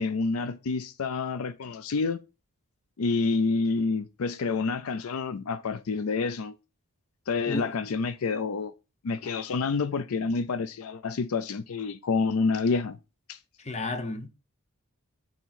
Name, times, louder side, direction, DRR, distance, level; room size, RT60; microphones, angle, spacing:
voice 1, 0.0-2.2 3.0-6.6 7.3-8.7 9.0-13.0 13.3-13.4, left 4 dB, 75° left, 0.5 m, -28 dB
voice 2, 13.6-14.3, left 2 dB, 30° left, 0.7 m, -32 dB
6.9 x 3.1 x 5.7 m
head